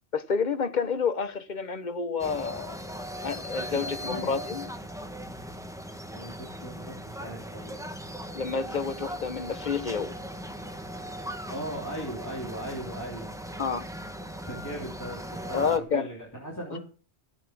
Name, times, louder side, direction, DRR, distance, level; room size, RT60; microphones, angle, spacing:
voice 1, 0.1-2.8 3.2-4.7 8.3-10.1 13.6-13.9 15.5-16.1 16.7-16.8, left 5 dB, 45° left, 1.2 m, -29 dB
sound 1, 2.2-15.8, equal, 5° right, 1.2 m, -39 dB
voice 2, 3.7-4.3 6.1-7.9 11.2-13.3 14.3-16.8, right 1 dB, 15° left, 3.2 m, -38 dB
15.0 x 8.5 x 6.0 m
omnidirectional pair, 1.1 m